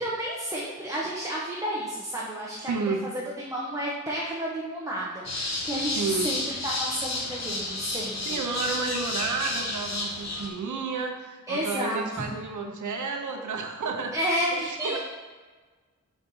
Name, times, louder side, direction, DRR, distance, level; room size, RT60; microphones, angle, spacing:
voice 1, 0.0-2.7 3.1-8.4 11.5-12.2 14.1-15.0, equal, 10° right, -6 dB, 0.9 m, -31 dB
voice 2, 2.7-3.1 6.0-6.3 8.2-14.1 14.5-15.0, right 4 dB, 75° right, 3 dB, 0.8 m, -31 dB
sound 1, 5.2-10.5, left 2 dB, 60° left, 1.0 m, -31 dB
4.5 x 4.2 x 5.3 m, 1.4 s
wide cardioid pair, 120°, 31 cm